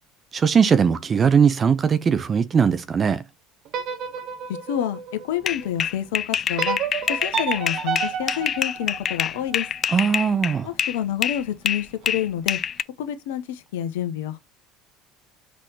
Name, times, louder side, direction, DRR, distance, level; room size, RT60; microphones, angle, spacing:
voice 1, 0.3-3.2 9.9-10.7, right 6 dB, 35° right, 0.8 m, -19 dB
sound 1, 3.7-5.8 6.6-9.7, right 7 dB, 55° right, 1.3 m, -31 dB
voice 2, 4.7-5.0 5.2-6.8 7.1-9.7 10.6-12.6 13.0-14.4, left 10 dB, 70° left, 1.0 m, -28 dB
sound 2, 5.5-11.0 11.2-12.8, left 8 dB, 40° left, 0.4 m, -26 dB
6.1 x 6.0 x 3.0 m
figure-of-eight pair, 65°, 0 cm